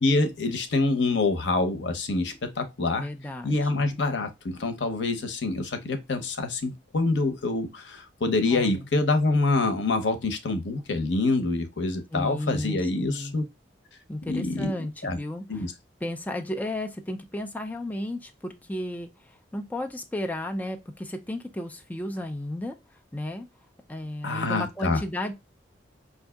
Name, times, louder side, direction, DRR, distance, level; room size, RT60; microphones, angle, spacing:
voice 1, 0.0-3.1 3.4-13.5 14.3-14.7 15.0-15.2 15.5-15.7 24.2-25.0, left 3 dB, 85° left, 0.8 m, -26 dB
voice 2, 3.0-3.8 8.5-8.9 12.1-13.4 14.1-15.7 16.0-22.8 23.1-23.5 23.9-25.3, left 1 dB, 10° left, 0.4 m, -33 dB
4.6 x 2.6 x 2.2 m
head